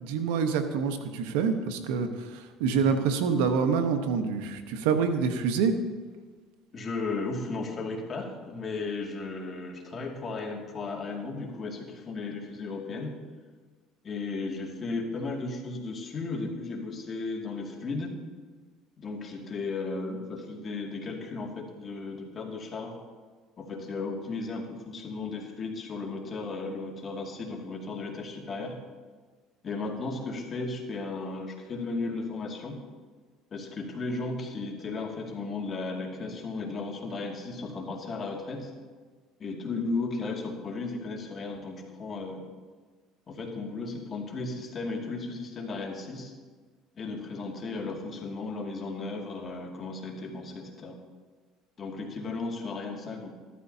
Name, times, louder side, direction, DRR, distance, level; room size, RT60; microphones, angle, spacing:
voice 1, 0.0-5.7, right 6 dB, 85° right, 7 dB, 1.0 m, -26 dB
voice 2, 6.7-13.1 14.0-18.1 19.0-23.0 23.6-28.8 29.6-32.8 33.5-38.7 39.4-42.4 43.3-46.3 47.0-51.0 51.8-53.3, left 3 dB, 35° left, 1 dB, 2.2 m, -35 dB
14.0 x 13.0 x 2.8 m, 1.4 s
supercardioid pair, 95°, 0 cm